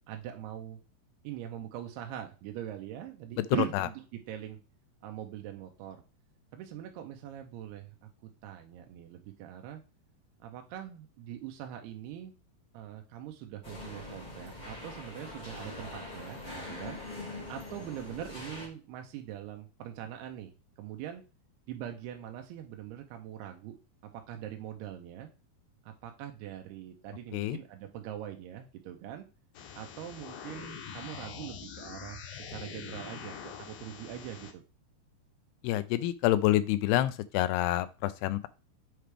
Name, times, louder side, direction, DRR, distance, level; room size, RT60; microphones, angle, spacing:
voice 1, 0.1-0.8 1.2-4.6 5.0-6.0 6.5-8.1 8.4-9.8 10.4-12.3 12.7-17.0 17.5-21.2 21.7-23.8 24.0-25.3 25.8-29.3 29.8-34.6, right 11 dB, 85° right, 4 dB, 2.7 m, -42 dB
sound 1, 13.6-18.7, left 2 dB, 30° left, 0.8 m, -43 dB
sound 2, 29.6-34.5, left 7 dB, 70° left, 2.3 m, -44 dB
voice 2, 35.6-38.5, left 14 dB, 90° left, 13 dB, 2.6 m, -27 dB
7.6 x 4.7 x 3.3 m, 0.32 s
omnidirectional pair, 4.6 m